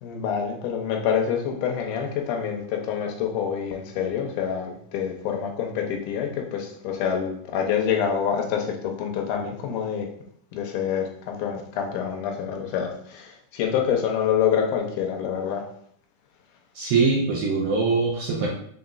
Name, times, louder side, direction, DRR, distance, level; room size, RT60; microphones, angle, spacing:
voice 1, 0.0-10.1 10.5-15.6, left 8 dB, 85° left, 2 dB, 2.2 m, -26 dB
voice 2, 16.7-18.5, right 4 dB, 75° right, -3 dB, 1.5 m, -22 dB
5.7 x 3.9 x 2.4 m, 0.67 s
omnidirectional pair, 3.6 m